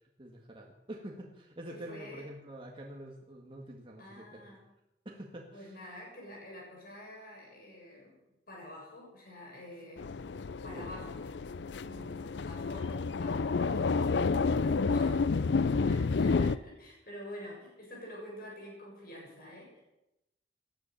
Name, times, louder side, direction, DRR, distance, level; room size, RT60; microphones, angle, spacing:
voice 1, 0.2-4.6 5.1-5.8 10.7-10.9, right 1 dB, 30° right, -1 dB, 1.8 m, -46 dB
voice 2, 1.7-2.3 4.0-4.6 5.5-8.1 8.5-10.1 10.6-11.2 11.8-14.1 14.9-15.3 15.8-19.8, left 1 dB, 55° left, -2 dB, 7.1 m, -47 dB
sound 1, 10.0-16.6, left 4 dB, 75° left, 0.5 m, -30 dB
19.0 x 10.5 x 6.9 m, 0.91 s
head